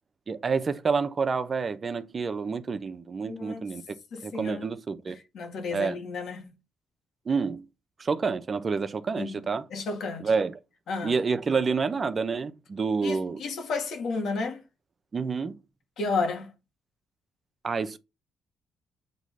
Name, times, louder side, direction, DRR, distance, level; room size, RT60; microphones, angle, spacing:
voice 1, 0.3-3.8 4.2-5.2 5.7-6.0 7.3-7.6 8.0-9.7 10.2-10.6 11.0-13.4 15.1-15.6 17.6-18.0, right 5 dB, 35° right, 0.8 m, -28 dB
voice 2, 3.2-3.7 4.1-4.7 5.3-6.5 9.2-9.4 9.7-10.3 10.9-11.2 13.0-14.6 16.0-16.5, left 4 dB, 70° left, 1.9 m, -32 dB
8.0 x 3.1 x 5.7 m
cardioid pair, 90°, 0 cm